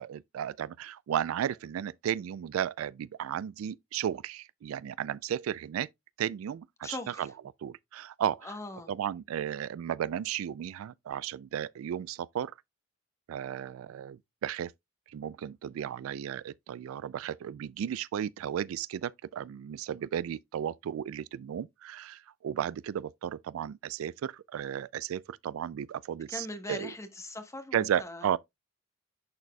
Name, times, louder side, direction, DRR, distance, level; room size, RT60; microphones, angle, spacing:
voice 1, 0.0-5.9 6.2-7.3 7.6-8.5 8.9-12.5 13.3-14.7 15.1-26.9 27.7-28.4, right 9 dB, 90° right, 0.3 m, -34 dB
voice 2, 6.8-7.3 8.4-8.9 26.3-28.3, left 2 dB, 15° left, 1.0 m, -40 dB
11.0 x 4.1 x 2.2 m
head